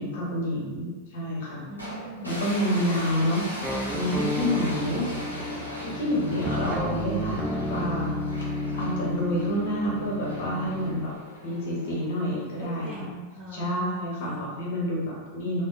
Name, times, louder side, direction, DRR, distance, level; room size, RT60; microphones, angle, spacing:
voice 1, 0.0-1.7 2.2-5.1 5.8-8.1 8.7-11.1 11.4-12.9 13.5-15.6, equal, 55° left, -4 dB, 0.8 m, -28 dB
voice 2, 1.7-2.4 4.6-4.8 12.6-14.4, right 1 dB, 20° right, -5 dB, 0.7 m, -40 dB
sound 1, 1.8-13.0, equal, 90° right, 0.7 m, -39 dB
sound 2, 3.6-11.1, left 1 dB, 5° right, 0.3 m, -32 dB
3.4 x 2.1 x 2.3 m, 1.2 s
figure-of-eight pair, 90°, 0 cm